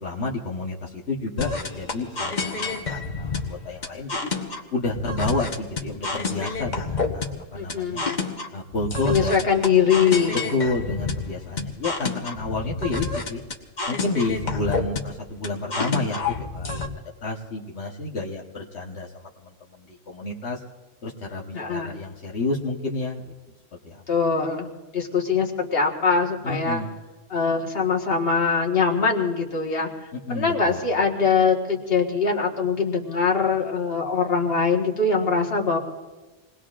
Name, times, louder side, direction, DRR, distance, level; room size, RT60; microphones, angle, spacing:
voice 1, 0.0-4.3 4.7-8.0 8.5-9.4 10.5-13.4 13.9-16.2 16.5-16.7 17.2-20.6 21.0-23.3 23.8-24.0 26.4-26.9 30.3-30.9, left 2 dB, 80° left, -3 dB, 1.5 m, -30 dB
sound 1, 1.4-16.9, left 4 dB, 45° left, 1.2 m, -29 dB
voice 2, 7.5-8.2 9.0-10.4 21.5-22.0 24.1-24.7 24.9-26.8 27.3-35.8, left 5 dB, 60° left, 0 dB, 1.8 m, -22 dB
27.5 x 20.0 x 2.5 m, 1.2 s
omnidirectional pair, 1.1 m